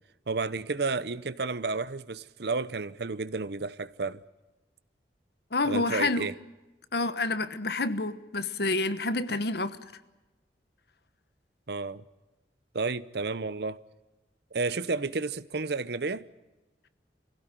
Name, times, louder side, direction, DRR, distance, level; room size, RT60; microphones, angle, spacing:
voice 1, 0.3-4.2 5.6-6.3 11.7-12.0 12.7-13.8 14.5-16.3, right 4 dB, 65° right, 0.8 m, -31 dB
voice 2, 5.5-6.3 6.9-9.8, left 3 dB, 60° left, 1.2 m, -28 dB
24.5 x 16.5 x 9.1 m
head